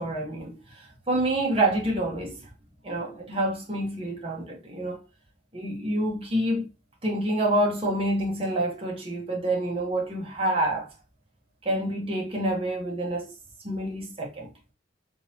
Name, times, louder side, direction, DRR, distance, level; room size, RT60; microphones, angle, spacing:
voice 1, 0.0-2.5 2.8-5.0 5.5-6.7 7.0-10.9 11.6-13.3 13.6-14.5, right 1 dB, 30° right, 1.1 m, -27 dB
3.9 x 2.6 x 2.7 m
head